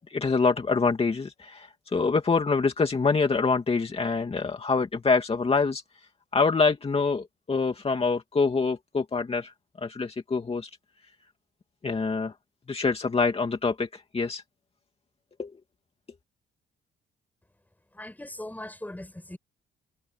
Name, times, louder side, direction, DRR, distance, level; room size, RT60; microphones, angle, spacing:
voice 1, 0.1-5.8 6.3-9.5 9.8-10.7 11.8-12.3 12.7-14.4 15.4-15.5, left 4 dB, 30° left, 2.5 m, -25 dB
voice 2, 17.9-19.4, left 1 dB, 10° left, 5.6 m, -39 dB
cardioid pair, 90°, 20 cm